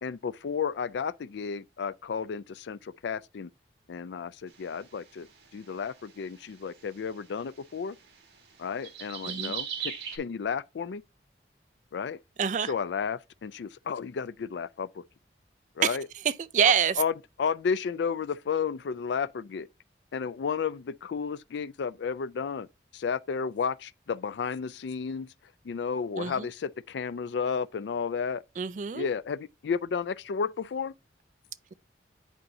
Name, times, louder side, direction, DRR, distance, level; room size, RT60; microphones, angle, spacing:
voice 1, 0.0-3.5 3.9-5.3 5.5-8.0 8.6-11.0 11.9-12.2 12.7-15.0 15.8-16.1 16.6-19.7 20.1-22.7 22.9-25.3 25.6-28.4 28.9-30.9, left 6 dB, 75° left, 0.4 m, -32 dB
sound 1, 4.5-10.2, right 8 dB, 80° right, 1.7 m, -39 dB
voice 2, 12.4-12.7 15.8-16.0 16.2-17.0 26.2-26.5 28.6-29.1, right 7 dB, 45° right, 0.3 m, -26 dB
10.5 x 4.3 x 2.7 m
head